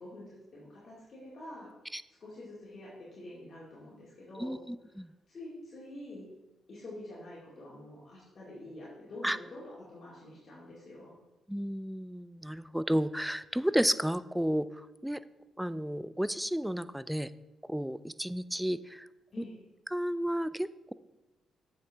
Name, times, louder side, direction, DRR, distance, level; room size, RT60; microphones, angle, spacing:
voice 1, 0.0-1.7 2.2-4.6 5.0-6.3 6.7-11.1 19.3-19.6, left 1 dB, 55° left, -7 dB, 2.3 m, -47 dB
voice 2, 4.4-5.1 9.2-9.4 11.5-15.2 15.6-17.3 17.7-19.1 19.4-19.5 19.9-20.9, equal, 5° right, 16 dB, 0.3 m, -32 dB
7.8 x 6.4 x 3.5 m, 1.0 s
supercardioid pair, 60°, 0 cm